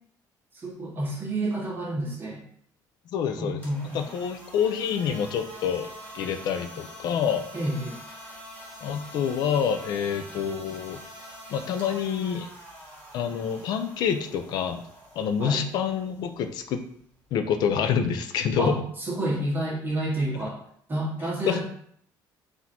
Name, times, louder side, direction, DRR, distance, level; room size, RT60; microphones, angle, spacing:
voice 1, 0.5-2.4 3.4-4.0 7.5-8.0 15.4-15.6 18.6-20.6 20.9-21.6, right 1 dB, 25° right, -5 dB, 1.2 m, -29 dB
voice 2, 3.1-3.6 3.9-5.9 6.1-7.5 8.8-11.0 11.5-12.5 13.1-14.8 15.2-16.8 17.3-18.8 21.5-21.6, left 7 dB, 70° left, 8 dB, 0.5 m, -27 dB
sound 1, 3.6-17.5, equal, 20° left, 1.5 m, -45 dB
4.1 x 2.6 x 4.3 m, 0.64 s
cardioid pair, 150°, 8 cm